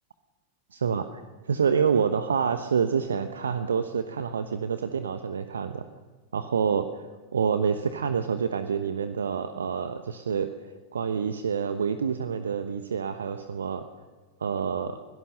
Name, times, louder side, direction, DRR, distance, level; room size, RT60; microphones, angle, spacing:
voice 1, 0.7-1.2 1.5-5.8 6.3-7.1 7.3-10.5 10.9-13.8 14.4-15.0, right 6 dB, 70° right, 9 dB, 1.1 m, -27 dB
24.0 x 17.5 x 6.6 m, 1.3 s
figure-of-eight pair, 90°, 0 cm